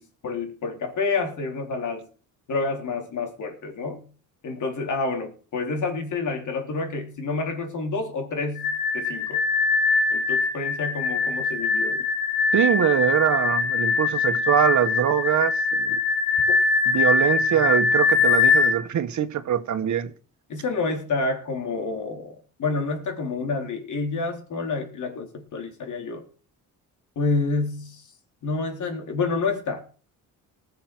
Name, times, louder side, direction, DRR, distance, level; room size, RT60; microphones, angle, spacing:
voice 1, 0.0-2.1 2.5-4.0 4.4-9.4 10.1-12.0 20.5-26.2 27.2-28.0 28.4-29.8, left 3 dB, 60° left, 4.1 m, -28 dB
sound 1, 8.6-18.7, left 4 dB, 85° left, 2.5 m, -22 dB
voice 2, 12.5-16.0 16.9-20.1, right 9 dB, 60° right, 1.5 m, -23 dB
19.5 x 6.6 x 6.2 m
cardioid pair, 110°, 33 cm